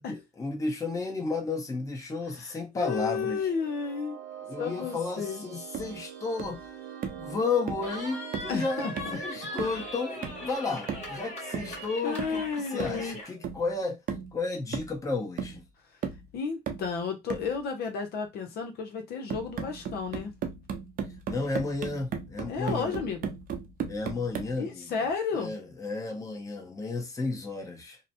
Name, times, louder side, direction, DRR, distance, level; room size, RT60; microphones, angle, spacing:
voice 1, 0.1-3.5 4.5-6.6 7.1-12.4 12.7-14.0 14.3-15.6 21.3-22.9 23.9-24.9 25.3-28.0, left 3 dB, 20° left, 0.8 m, -32 dB
voice 2, 2.4-4.2 4.6-5.4 8.5-9.2 12.0-13.2 16.3-20.3 22.5-23.3 24.6-25.5, left 5 dB, 70° left, 0.8 m, -32 dB
sound 1, 3.2-14.0, right 9 dB, 85° right, 0.9 m, -45 dB
sound 2, 5.7-6.0 6.4-6.6 7.0-7.3 7.7-7.9 8.3-8.6 9.0-9.2 9.6-9.9 10.2-10.5 10.9-11.2 11.5-11.8 12.2-12.4 12.8-13.1 13.4-13.7 14.1-14.3 14.7-15.1 15.4-15.6 16.0-16.3 16.7-16.9 17.3-17.5 19.3-24.6, right 7 dB, 55° right, 0.7 m, -36 dB
Cheering, 7.8-13.3, left 2 dB, 40° left, 1.4 m, -40 dB
2.8 x 2.1 x 2.6 m
cardioid pair, 110°, 17 cm